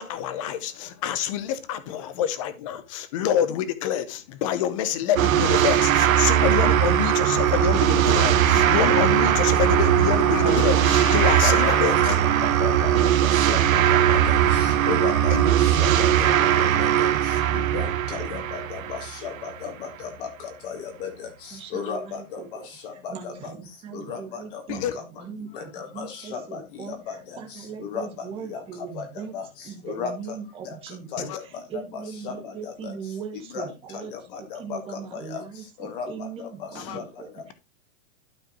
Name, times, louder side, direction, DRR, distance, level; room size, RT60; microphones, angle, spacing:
voice 1, 0.0-12.1 15.3-15.4 24.7-24.9 31.2-31.4 36.8-37.0, left 10 dB, 25° left, 0.7 m, -27 dB
sound 1, 5.2-19.5, right 11 dB, 90° right, 1.4 m, -20 dB
voice 2, 11.4-11.9 12.4-23.5 23.9-30.4 30.6-33.1 33.5-37.5, left 6 dB, 40° left, 1.8 m, -36 dB
voice 3, 21.5-22.7 23.1-29.3 29.6-31.3 31.7-34.1 34.4-37.5, right 6 dB, 15° right, 1.7 m, -39 dB
12.0 x 4.8 x 3.0 m
supercardioid pair, 180°, 39 cm